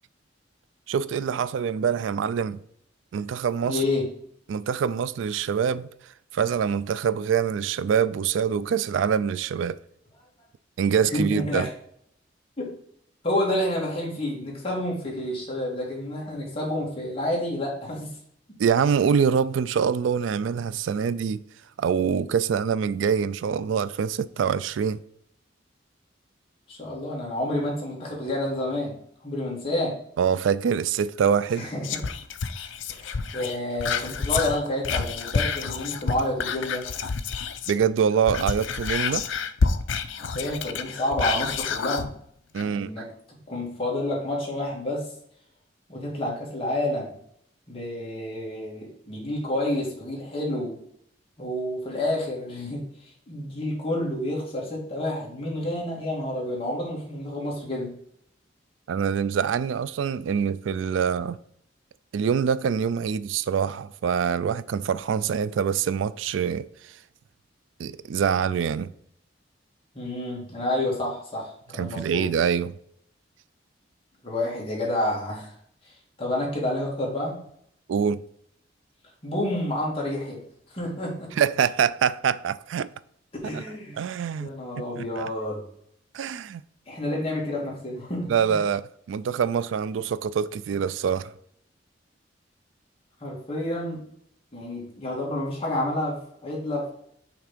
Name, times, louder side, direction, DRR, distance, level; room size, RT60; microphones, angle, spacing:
voice 1, 0.9-2.6 3.1-3.8 4.5-5.9 6.3-9.8 10.8-11.7 18.6-21.4 21.8-25.0 30.2-31.7 37.7-39.3 42.5-43.0 58.9-61.4 62.1-66.9 67.8-68.9 71.8-72.7 77.9-78.2 81.4-82.9 83.5-83.6 84.0-85.3 86.1-86.6 88.3-88.8 89.1-91.3, right 7 dB, 90° right, 0.3 m, -25 dB
voice 2, 3.6-4.1 11.1-11.7 12.6-12.7 13.2-18.1 26.7-28.9 29.2-30.0 31.6-32.0 32.9-36.9 40.2-42.1 42.6-43.1 43.5-45.1 45.9-47.2 47.7-50.8 51.4-52.8 53.3-57.9 69.9-72.3 74.2-75.5 75.8-77.4 79.2-80.4 80.7-81.3 83.4-84.0 84.4-85.6 86.9-88.6 93.2-94.0 94.5-96.9, left 1 dB, 30° left, 2.3 m, -29 dB
Whispering, 31.8-37.8 38.2-42.1 42.6-42.7, left 5 dB, 90° left, 0.5 m, -28 dB
5.9 x 3.6 x 5.0 m
head